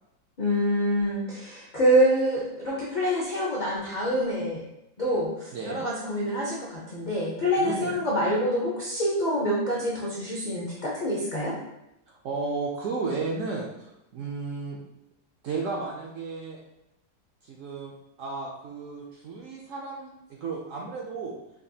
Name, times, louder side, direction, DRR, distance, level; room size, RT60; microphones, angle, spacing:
voice 1, 0.4-4.6 5.0-11.5, equal, 60° left, -5 dB, 0.4 m, -26 dB
voice 2, 5.5-5.8 7.6-8.0 12.1-14.8 15.4-16.6 17.4-21.3, right 4 dB, 70° right, -2 dB, 0.8 m, -34 dB
5.0 x 2.3 x 2.6 m, 0.86 s
omnidirectional pair, 1.8 m